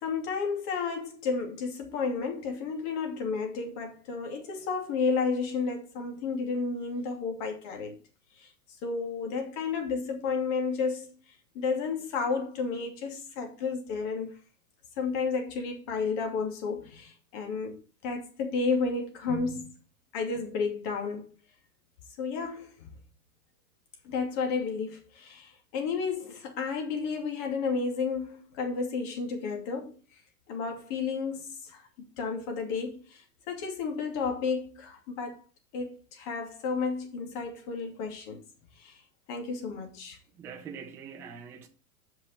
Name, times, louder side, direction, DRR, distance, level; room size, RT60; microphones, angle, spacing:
voice 1, 0.0-8.0 8.4-8.5 8.8-11.1 11.5-14.3 15.0-19.7 20.1-21.3 22.2-22.9 24.0-29.9 30.5-35.4 35.7-38.4 38.8-39.0 39.3-40.2, left 4 dB, 45° left, 2.6 m, -32 dB
voice 2, 40.4-41.7, right 6 dB, 5° right, 0.3 m, -43 dB
5.9 x 5.5 x 6.5 m
hypercardioid pair, 130°, 45 cm